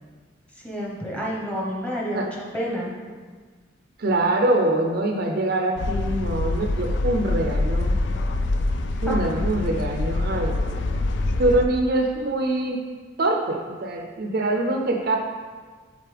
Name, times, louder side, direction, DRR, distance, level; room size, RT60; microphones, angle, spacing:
voice 1, 0.6-2.3 2.5-2.9 9.1-9.2, equal, 5° left, -4 dB, 1.0 m, -29 dB
voice 2, 4.0-7.9 9.0-11.1 11.4-12.8 13.2-15.2, right 2 dB, 55° right, 2 dB, 0.6 m, -24 dB
sound 1, 5.8-11.7, left 2 dB, 65° left, 0.4 m, -25 dB
7.6 x 4.1 x 3.4 m, 1.5 s
head